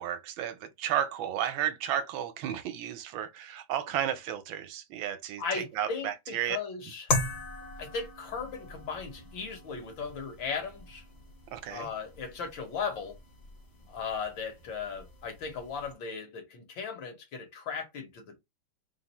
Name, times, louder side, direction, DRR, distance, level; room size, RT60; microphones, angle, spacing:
voice 1, 0.0-6.6 11.5-11.9, right 10 dB, 75° right, 1.4 m, -33 dB
voice 2, 5.4-7.1 7.8-11.0 11.7-13.2 13.9-18.4, left 5 dB, 70° left, 1.8 m, -37 dB
sound 1, 7.1-15.9, left 2 dB, 40° left, 1.0 m, -39 dB
3.8 x 2.5 x 4.1 m
omnidirectional pair, 2.3 m